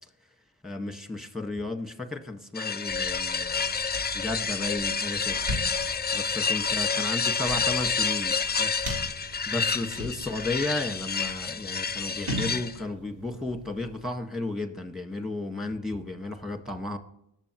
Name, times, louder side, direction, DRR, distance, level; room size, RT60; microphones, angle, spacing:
voice 1, 0.6-3.7 4.1-5.4 6.1-8.8 9.0-17.0, left 2 dB, ahead, 5 dB, 1.7 m, -34 dB
sound 1, 2.5-12.8, left 5 dB, 20° left, 0.5 m, -29 dB
sound 2, 2.9-14.1, equal, 85° right, 3.9 m, -40 dB
19.0 x 7.5 x 3.1 m, 0.76 s
cardioid pair, 65°, 47 cm